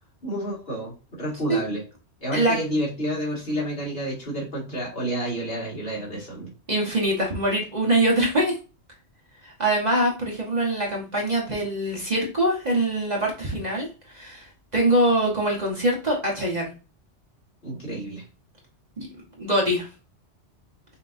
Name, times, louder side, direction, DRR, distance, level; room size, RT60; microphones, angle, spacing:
voice 1, 0.2-1.8 2.2-6.5 17.6-18.2, equal, 50° left, -3 dB, 2.0 m, -30 dB
voice 2, 6.7-8.5 9.4-16.7 19.0-19.1 19.4-19.9, right 1 dB, 35° right, -2 dB, 1.1 m, -23 dB
5.8 x 2.8 x 2.5 m, 0.32 s
omnidirectional pair, 1.3 m